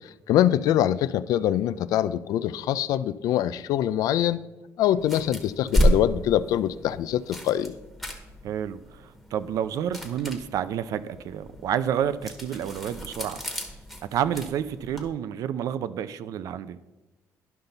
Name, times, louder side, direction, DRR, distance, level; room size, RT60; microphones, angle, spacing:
voice 1, 0.3-4.4 4.8-7.7, left 11 dB, 75° left, 16 dB, 0.4 m, -24 dB
sound 1, 5.0-15.1, equal, ahead, 1.4 m, -31 dB
voice 2, 8.4-13.4 14.1-16.8, right 9 dB, 70° right, 14 dB, 0.5 m, -29 dB
11.5 x 5.6 x 3.9 m, 1.1 s
cardioid pair, 125°, 6 cm